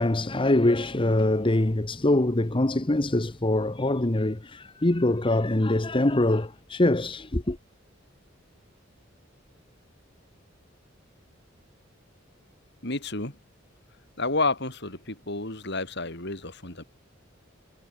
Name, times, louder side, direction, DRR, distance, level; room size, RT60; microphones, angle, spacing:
voice 1, 0.0-7.6, left 1 dB, 25° left, 1.0 m, -24 dB
voice 2, 12.8-13.3 14.2-16.8, left 3 dB, 60° left, 6.9 m, -30 dB
head